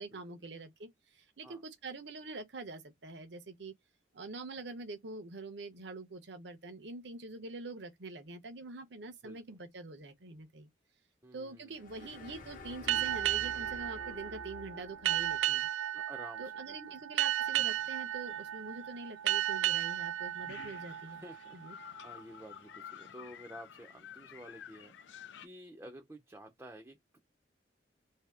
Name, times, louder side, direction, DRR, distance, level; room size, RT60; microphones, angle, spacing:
voice 1, 0.0-3.7 4.1-10.7 11.3-15.7 16.4-21.2 21.5-21.8, right 3 dB, 65° right, 0.8 m, -45 dB
voice 2, 11.2-12.3 15.9-17.0 21.1-27.2, right 1 dB, 15° right, 0.5 m, -52 dB
sound 1, 11.7-15.5, left 3 dB, 45° left, 0.9 m, -49 dB
sound 2, 12.9-22.0, right 12 dB, 85° right, 0.3 m, -34 dB
sound 3, 17.4-25.5, left 8 dB, 75° left, 0.4 m, -53 dB
2.8 x 2.8 x 3.4 m
head